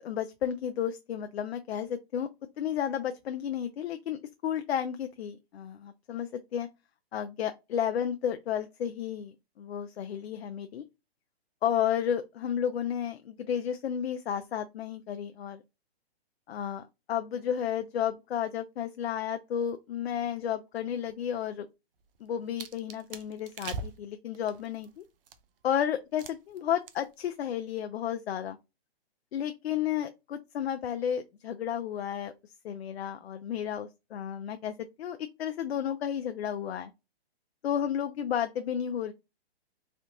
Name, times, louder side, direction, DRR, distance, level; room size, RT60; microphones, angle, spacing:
voice 1, 0.0-2.3 2.6-6.7 7.1-10.8 11.6-15.6 16.5-21.7 22.2-25.0 25.6-28.6 29.3-32.3 32.6-36.9 37.6-39.1, left 9 dB, 75° left, 0.5 m, -32 dB
sound 1, 22.0-25.6 26.2-26.6 26.9-27.3 27.5-27.8, right 4 dB, 60° right, 0.6 m, -42 dB
3.3 x 2.7 x 2.6 m
hypercardioid pair, 150°, 31 cm